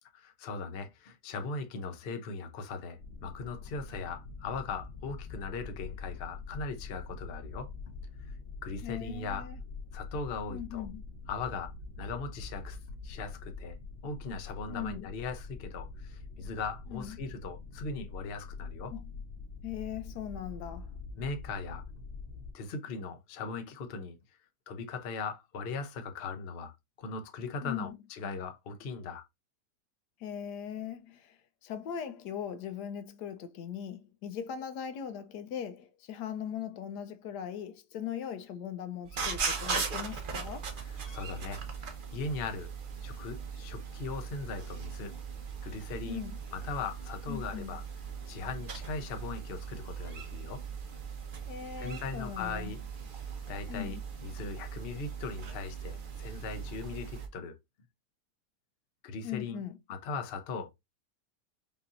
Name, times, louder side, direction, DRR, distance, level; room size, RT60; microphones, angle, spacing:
voice 1, 0.1-7.7 8.6-9.5 9.9-10.9 11.3-12.8 13.0-13.8 14.0-18.9 21.2-21.9 22.5-24.2 24.7-29.2 40.8-42.7 43.0-45.1 45.6-46.2 46.5-47.8 48.3-50.6 51.8-52.8 53.5-57.6 59.0-59.6 59.9-60.7, left 4 dB, 50° left, 0.7 m, -39 dB
sound 1, 3.0-22.5, left 4 dB, 25° left, 1.8 m, -44 dB
voice 2, 8.8-9.6 10.5-11.0 14.7-15.1 16.9-17.2 18.9-19.1 19.6-20.9 27.6-28.0 30.2-40.7 46.1-46.4 47.3-47.8 51.5-52.7 53.7-54.0 59.2-59.8, left 9 dB, 75° left, 1.2 m, -39 dB
sound 2, 39.1-57.3, right 6 dB, 45° right, 0.7 m, -39 dB
5.4 x 2.8 x 2.5 m
omnidirectional pair, 1.8 m